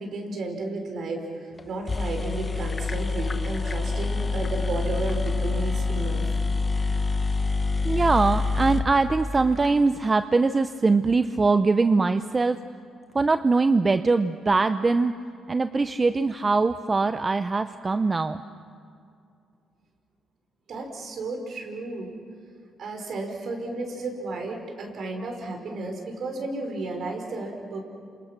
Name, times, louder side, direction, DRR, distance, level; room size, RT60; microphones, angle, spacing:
voice 1, 0.0-6.2 20.7-22.1 22.8-27.8, right 2 dB, 60° right, 3 dB, 5.0 m, -33 dB
sound 1, 1.6-1.7 1.9-9.7, left 3 dB, 30° left, 1.1 m, -26 dB
voice 2, 7.8-12.6 13.1-15.1 15.5-18.4, right 3 dB, 30° right, 10 dB, 0.7 m, -22 dB
29.0 x 27.0 x 6.0 m, 2.5 s
cardioid pair, 90°, 0 cm